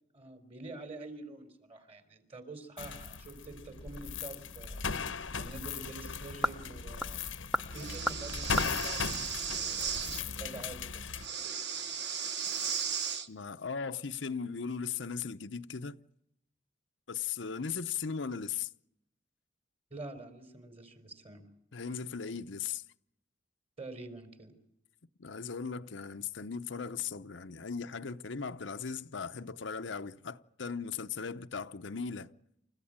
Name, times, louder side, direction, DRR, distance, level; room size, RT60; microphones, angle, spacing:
voice 1, 0.1-4.8 5.4-7.2 7.7-12.1 19.9-21.5 23.8-24.6, right 2 dB, 30° right, 3.8 m, -47 dB
sound 1, 2.8-11.2, left 5 dB, 85° left, 1.1 m, -38 dB
sound 2, 4.3-10.1, left 1 dB, ahead, 0.8 m, -39 dB
Breathing, 7.7-10.2 11.2-13.3, right 7 dB, 60° right, 1.2 m, -36 dB
voice 2, 13.3-16.0 17.1-18.7 21.7-22.8 25.2-32.3, left 6 dB, 70° left, 0.8 m, -38 dB
29.0 x 15.0 x 8.8 m
head